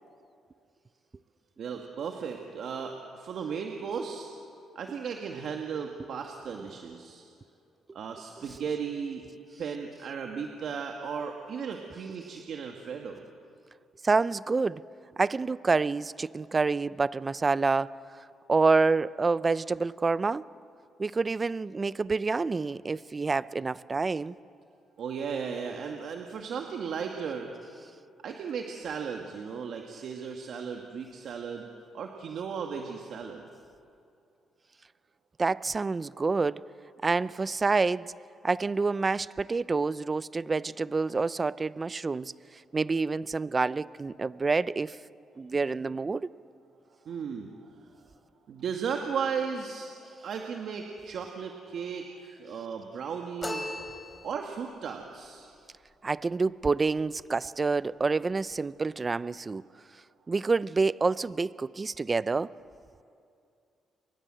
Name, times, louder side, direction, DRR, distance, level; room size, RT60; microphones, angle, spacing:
voice 1, 1.6-4.3 4.8-7.2 7.9-9.2 9.6-13.2 25.0-27.5 28.2-31.7 31.9-33.5 47.1-47.5 47.8-47.9 48.5-49.9 50.2-53.8 54.2-55.5, right 6 dB, 65° right, 2.1 m, -35 dB
voice 2, 14.0-14.8 15.2-17.9 18.5-20.4 21.0-24.4 35.4-36.6 37.0-38.1 38.4-42.3 42.7-45.0 45.4-46.3 56.0-59.6 60.3-62.5, right 4 dB, 30° right, 0.6 m, -27 dB
sound 1, 53.4-54.7, left 1 dB, 10° left, 4.5 m, -37 dB
29.5 x 23.5 x 7.8 m
cardioid pair, 90°, 0 cm